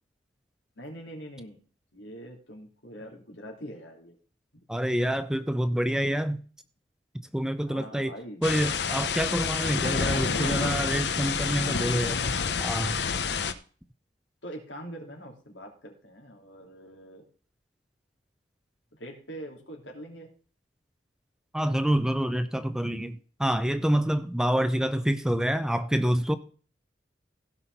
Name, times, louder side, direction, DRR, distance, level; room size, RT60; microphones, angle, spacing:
voice 1, 0.7-1.6 1.9-4.1 4.5-4.6 7.6-8.4 14.4-17.2 18.9-20.3, equal, 85° left, 3.2 m, -43 dB
voice 2, 4.7-6.4 7.3-8.1 8.4-12.2 12.6-13.0 21.5-26.4, equal, 5° right, 0.5 m, -27 dB
sound 1, 8.4-13.5, left 5 dB, 65° left, 0.8 m, -28 dB
16.0 x 5.9 x 4.1 m
head